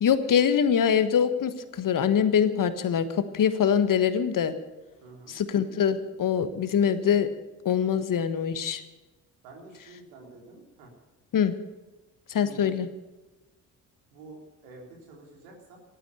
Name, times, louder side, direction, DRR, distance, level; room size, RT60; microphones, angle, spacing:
voice 1, 0.0-4.5 5.3-7.3 7.6-8.8 11.3-11.5 12.3-12.9, left 8 dB, 45° left, 11 dB, 1.4 m, -24 dB
voice 2, 5.0-5.4 9.4-10.9 12.4-12.8 14.1-15.8, right 3 dB, 70° right, 0 dB, 3.7 m, -48 dB
14.5 x 14.0 x 6.9 m, 1.1 s
figure-of-eight pair, 40°, 47 cm